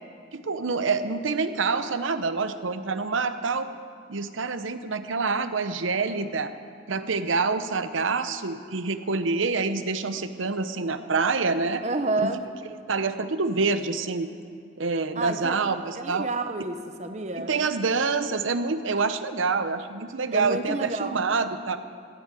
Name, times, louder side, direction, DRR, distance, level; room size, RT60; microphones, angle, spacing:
voice 1, 0.3-3.7 4.1-6.5 6.9-11.8 12.2-12.3 12.9-14.3 14.8-16.3 17.3-21.8, right 4 dB, 85° right, 11 dB, 0.8 m, -26 dB
voice 2, 11.8-12.5 15.2-15.6 16.0-17.7 20.3-21.1, right 2 dB, 35° right, 8 dB, 0.8 m, -29 dB
15.5 x 8.3 x 9.0 m, 2.3 s
head